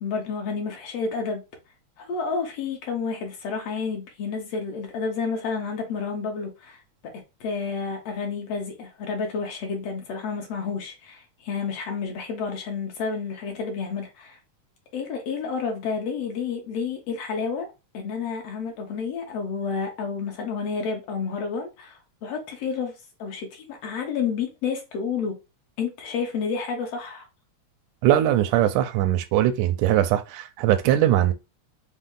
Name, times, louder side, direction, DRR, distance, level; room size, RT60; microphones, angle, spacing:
voice 1, 0.0-1.4 2.0-6.8 7.4-14.4 14.9-17.7 17.9-22.9 23.2-25.4 25.8-27.3, left 5 dB, 65° left, 1.8 m, -30 dB
voice 2, 28.0-31.3, right 12 dB, 85° right, 2.0 m, -21 dB
5.2 x 2.1 x 3.7 m
omnidirectional pair, 3.4 m